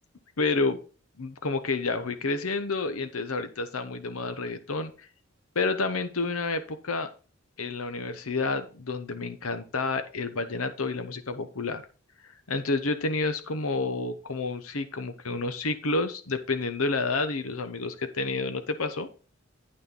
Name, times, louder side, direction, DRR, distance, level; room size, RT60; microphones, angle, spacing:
voice 1, 0.4-0.8 1.2-4.9 5.5-7.1 7.6-11.8 12.5-19.1, left 3 dB, 90° left, 9 dB, 1.0 m, -29 dB
9.1 x 6.4 x 3.8 m, 0.36 s
head